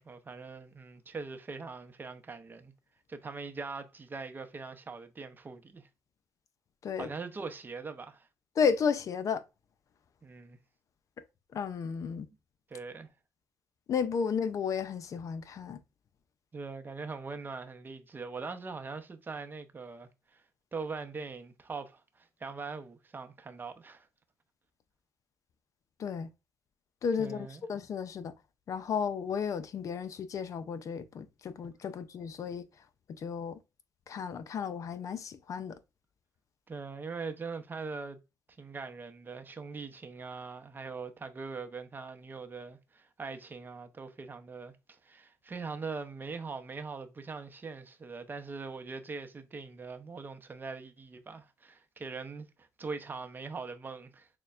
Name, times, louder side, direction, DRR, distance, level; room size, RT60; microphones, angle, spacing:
voice 1, 0.0-2.7 3.1-5.9 7.0-8.3 10.2-10.6 12.7-13.1 16.5-20.4 20.7-24.1 27.2-27.7 36.7-38.2 38.6-54.3, right 4 dB, 30° right, 0.6 m, -42 dB
voice 2, 8.6-9.4 11.5-12.3 13.9-15.8 26.0-26.3 27.0-28.3 28.7-32.6 33.1-33.6 34.1-35.8, left 6 dB, 50° left, 0.5 m, -33 dB
6.5 x 2.2 x 2.4 m
cardioid pair, 85°, 7 cm